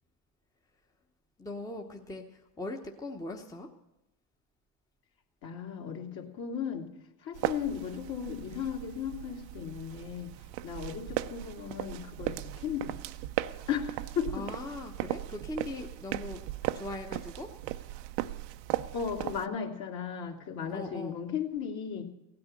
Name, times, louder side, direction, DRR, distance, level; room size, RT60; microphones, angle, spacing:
voice 1, 1.4-3.7 14.3-16.4 16.7-17.5 20.7-21.2, left 2 dB, 5° left, 3 dB, 0.9 m, -40 dB
voice 2, 5.4-6.9 7.2-10.3 10.6-12.9 13.7-14.4 18.9-22.0, left 7 dB, 45° left, 2 dB, 2.5 m, -35 dB
sound 1, 7.3-19.5, right 15 dB, 90° right, 0.7 m, -37 dB
15.5 x 9.6 x 6.5 m, 0.93 s
supercardioid pair, 105°, 48 cm